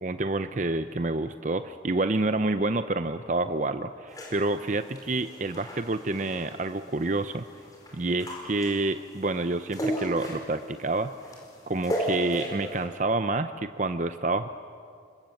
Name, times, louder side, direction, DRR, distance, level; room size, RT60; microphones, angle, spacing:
voice 1, 0.0-7.4 7.9-11.1 11.7-14.5, right 2 dB, 40° right, 10 dB, 0.7 m, -28 dB
sound 1, 4.1-12.8, equal, 20° left, 5.2 m, -36 dB
28.5 x 25.5 x 7.9 m, 2.3 s
head